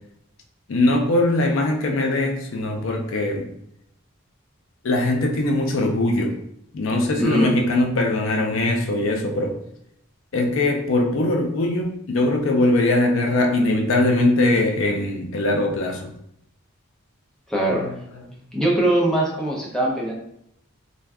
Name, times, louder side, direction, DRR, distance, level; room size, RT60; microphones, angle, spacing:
voice 1, 0.7-3.5 4.8-6.3 6.7-9.5 10.3-16.1 17.7-18.2, left 2 dB, 70° left, 3 dB, 0.4 m, -21 dB
voice 2, 7.2-7.6 17.5-17.9 18.5-20.1, right 1 dB, 5° left, -4 dB, 0.5 m, -21 dB
2.5 x 2.3 x 3.4 m, 0.74 s
head